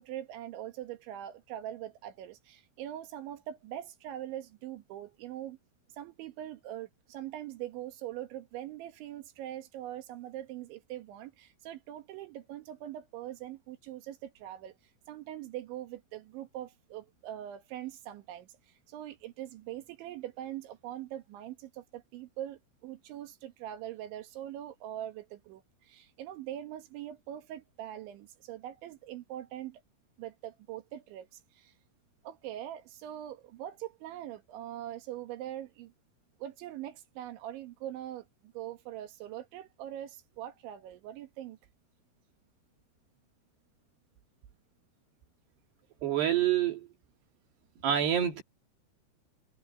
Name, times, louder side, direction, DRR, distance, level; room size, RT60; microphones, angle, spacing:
voice 1, 0.0-5.6 5.9-14.8 15.1-18.5 18.9-29.8 30.2-31.7 32.2-35.9 36.4-41.6, right 12 dB, 85° right, 4.0 m, -42 dB
voice 2, 46.0-46.9 47.8-48.4, right 10 dB, 65° right, 4.1 m, -27 dB
omnidirectional pair, 5.2 m